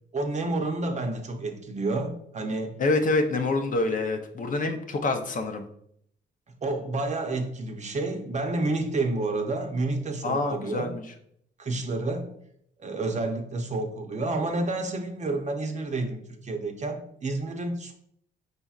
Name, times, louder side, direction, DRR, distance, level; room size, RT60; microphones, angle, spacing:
voice 1, 0.1-2.8 6.6-10.9 11.6-12.3 12.8-17.9, right 2 dB, 35° right, 0.7 m, -29 dB
voice 2, 2.8-5.7 10.2-11.0, left 3 dB, 40° left, 0.7 m, -26 dB
5.2 x 4.2 x 2.4 m
cardioid pair, 90°, 20 cm